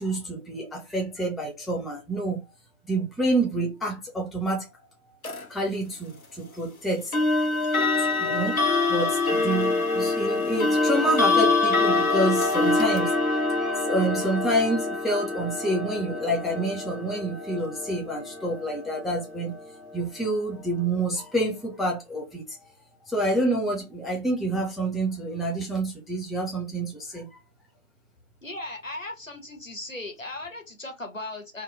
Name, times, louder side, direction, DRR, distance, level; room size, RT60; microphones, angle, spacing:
voice 1, 0.0-2.4 2.8-4.7 5.5-7.2 8.0-19.5 19.9-22.6 23.1-27.3, right 1 dB, ahead, 0.5 m, -28 dB
sound 1, 5.2-5.4 7.1-20.0, left 3 dB, 85° left, 0.9 m, -25 dB
voice 2, 28.4-31.6, left 2 dB, 65° left, 1.2 m, -37 dB
2.9 x 2.1 x 3.1 m
figure-of-eight pair, 180°, 42 cm